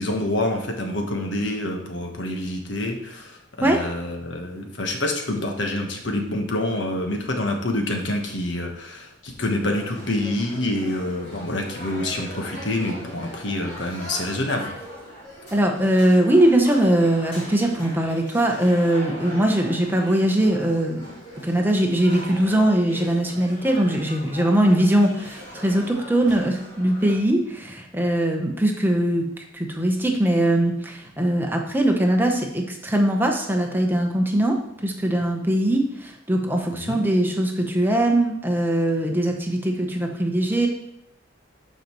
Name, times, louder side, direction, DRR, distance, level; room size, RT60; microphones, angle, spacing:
voice 1, 0.0-14.7 36.7-37.0, left 1 dB, 70° left, 3 dB, 1.3 m, -27 dB
sound 1, 9.6-27.2, equal, 40° left, 3.1 m, -40 dB
voice 2, 15.5-21.0 21.4-40.7, right 1 dB, 10° right, 2 dB, 0.9 m, -21 dB
12.0 x 5.3 x 3.1 m, 0.80 s
head